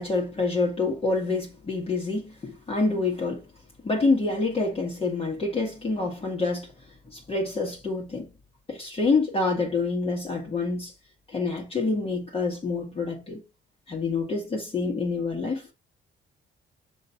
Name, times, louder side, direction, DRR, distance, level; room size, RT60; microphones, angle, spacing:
voice 1, 0.0-3.4 3.8-6.7 7.1-8.3 8.7-10.9 11.3-13.4 13.9-15.7, left 3 dB, 30° left, 1.7 m, -27 dB
7.0 x 2.8 x 5.8 m
cardioid pair, 90°, 20 cm